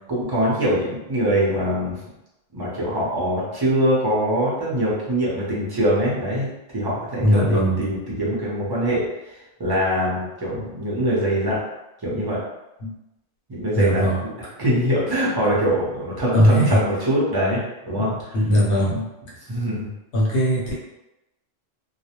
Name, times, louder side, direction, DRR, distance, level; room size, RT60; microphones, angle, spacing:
voice 1, 0.1-2.0 2.5-11.6 12.0-12.4 13.5-14.3 14.6-17.6 17.9-18.3 18.7-18.9 19.5-19.9, equal, 25° right, -7 dB, 0.6 m, -23 dB
voice 2, 7.2-7.8 10.5-10.6 12.8-12.9 13.8-14.5 16.3-16.8 17.9-19.1 20.1-20.7, equal, 65° left, -4 dB, 1.0 m, -20 dB
2.4 x 2.0 x 2.9 m, 0.96 s
omnidirectional pair, 1.3 m